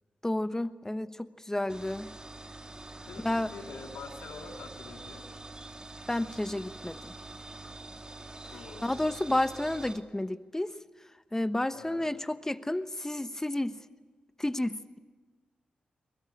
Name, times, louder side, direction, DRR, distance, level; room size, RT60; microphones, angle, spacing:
voice 1, 0.2-2.1 3.2-3.5 6.1-7.1 8.8-10.7 11.3-13.8 14.4-15.0, left 1 dB, 15° left, 12 dB, 1.1 m, -31 dB
sound 1, 1.7-10.0, right 2 dB, 25° right, 2.6 m, -45 dB
voice 2, 3.1-5.2 8.5-9.1 11.7-12.1, left 4 dB, 85° left, 2 dB, 3.0 m, -46 dB
22.0 x 22.0 x 8.7 m, 1.4 s
supercardioid pair, 45°, 3 cm